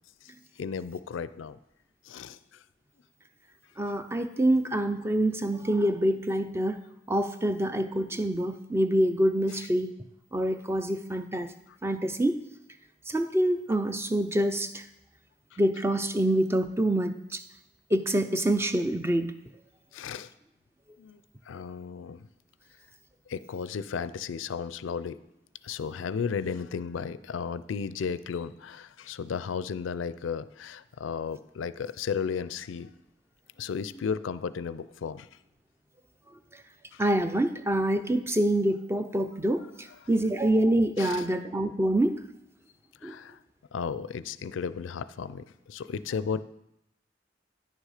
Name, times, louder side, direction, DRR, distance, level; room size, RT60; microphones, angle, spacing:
voice 1, 0.6-1.6 2.0-2.6 9.5-9.7 11.7-11.8 15.5-15.6 19.9-20.3 21.0-21.2 21.5-22.2 23.3-25.2 25.6-32.9 33.6-35.3 36.9-37.0 40.0-40.1 41.0-41.4 43.0-43.4 43.7-46.4, left 6 dB, 90° left, 15 dB, 0.4 m, -34 dB
voice 2, 3.8-6.8 7.1-9.9 10.3-11.5 11.8-12.4 13.1-14.8 15.6-17.4 17.9-19.3 37.0-42.2 43.0-43.1, right 1 dB, 15° right, 9 dB, 0.4 m, -26 dB
10.0 x 6.5 x 4.9 m, 0.83 s
head